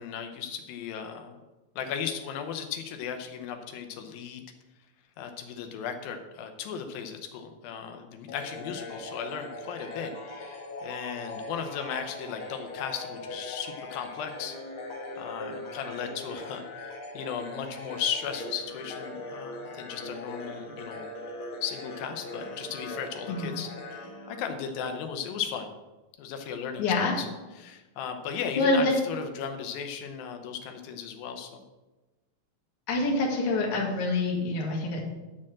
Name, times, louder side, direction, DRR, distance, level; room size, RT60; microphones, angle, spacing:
voice 1, 0.0-1.4 1.8-4.4 5.2-14.5 15.2-21.1 21.6-23.7 24.3-25.7 26.2-27.3 27.6-31.6, left 7 dB, 85° left, 5 dB, 2.6 m, -36 dB
sound 1, 8.3-25.0, left 2 dB, 55° left, 1.5 m, -40 dB
voice 2, 26.8-27.2 28.5-28.9 32.9-35.0, left 2 dB, 40° left, -1 dB, 1.9 m, -26 dB
11.0 x 4.4 x 7.5 m, 1.1 s
omnidirectional pair, 4.1 m